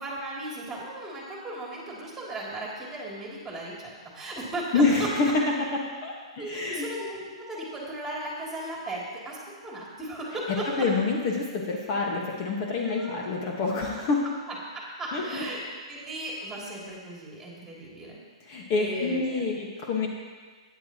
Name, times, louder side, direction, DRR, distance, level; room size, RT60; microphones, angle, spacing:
voice 1, 0.0-4.8 6.4-10.9 12.8-13.2 14.7-15.6 15.9-18.2 18.8-19.5, right 1 dB, 10° right, -4 dB, 2.9 m, -36 dB
voice 2, 4.7-6.8 10.8-14.2 15.1-15.4 18.4-20.1, left 3 dB, 40° left, -1 dB, 1.5 m, -27 dB
13.5 x 9.6 x 3.0 m, 1.5 s
hypercardioid pair, 135°, 3 cm